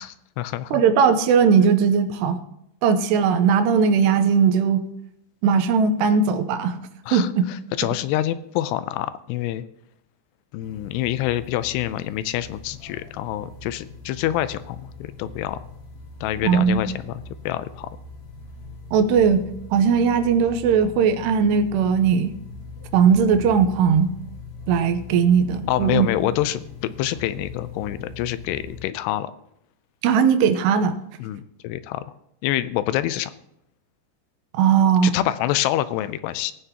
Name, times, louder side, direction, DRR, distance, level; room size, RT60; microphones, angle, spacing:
voice 1, 0.0-0.8 7.1-9.6 10.5-15.6 16.2-17.9 25.7-29.3 31.2-32.1 32.4-33.3 35.0-36.5, left 13 dB, 85° left, 14 dB, 2.6 m, -26 dB
voice 2, 0.7-2.4 2.8-4.9 5.4-6.8 7.1-7.5 16.4-16.8 18.9-22.3 22.9-24.1 24.7-26.1 30.0-31.0 34.5-35.2, right 6 dB, 85° right, 9 dB, 2.9 m, -18 dB
sound 1, 10.6-28.8, left 4 dB, 45° left, 3.8 m, -41 dB
19.5 x 9.0 x 2.9 m, 0.80 s
omnidirectional pair, 4.9 m